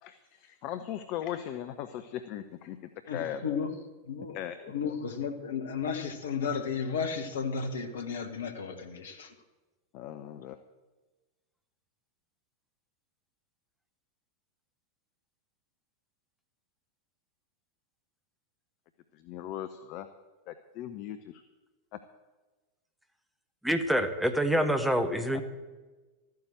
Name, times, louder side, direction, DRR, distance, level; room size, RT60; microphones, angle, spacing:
voice 1, 0.0-3.6 4.3-4.6 4.8-4.9 9.9-10.6 19.1-20.1 20.5-21.4 21.9-22.0 25.3-25.4, left 11 dB, 40° left, 10 dB, 0.8 m, -39 dB
voice 2, 3.1-3.7 4.0-9.4, left 6 dB, 65° left, 8 dB, 1.4 m, -34 dB
voice 3, 23.6-25.4, equal, ahead, 6 dB, 1.3 m, -26 dB
13.0 x 9.4 x 7.7 m, 1.2 s
figure-of-eight pair, 90°, 0 cm